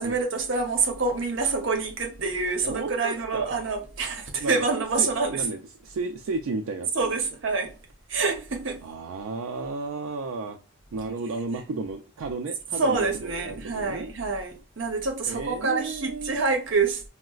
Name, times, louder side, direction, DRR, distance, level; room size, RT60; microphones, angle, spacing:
voice 1, 0.0-5.4 6.9-7.7 8.1-8.8 12.7-17.0, right 4 dB, 70° right, 0.7 m, -27 dB
voice 2, 2.6-3.6 4.4-4.5 5.0-7.1 8.8-10.6 10.9-14.1 15.3-16.4, right 3 dB, 90° right, 0.4 m, -33 dB
3.9 x 2.1 x 2.2 m
head